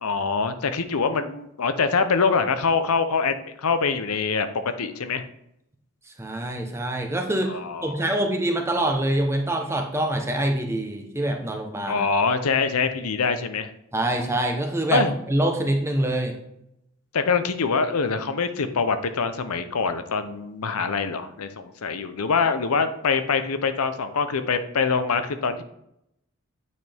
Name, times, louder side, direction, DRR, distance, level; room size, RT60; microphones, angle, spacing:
voice 1, 0.0-5.2 7.5-8.0 11.9-13.7 14.9-15.1 17.1-25.6, left 5 dB, 85° left, 10 dB, 0.7 m, -24 dB
voice 2, 6.2-12.0 13.9-16.3, right 1 dB, 10° right, 3 dB, 0.9 m, -25 dB
9.3 x 5.7 x 3.5 m, 0.79 s
head